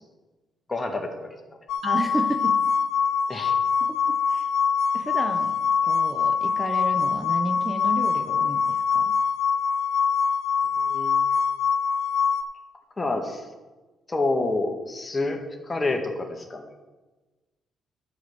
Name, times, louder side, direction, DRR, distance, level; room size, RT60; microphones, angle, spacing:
voice 1, 0.7-1.3 3.3-3.6 10.9-11.2 13.0-13.4 14.1-16.8, left 2 dB, 25° left, 3 dB, 1.6 m, -28 dB
sound 1, 1.7-12.4, left 6 dB, 80° left, 0.5 m, -24 dB
voice 2, 1.8-2.7 3.8-4.5 4.9-9.1, right 1 dB, 20° right, 6 dB, 0.8 m, -32 dB
11.5 x 4.9 x 7.0 m, 1.2 s
cardioid pair, 90°, 0 cm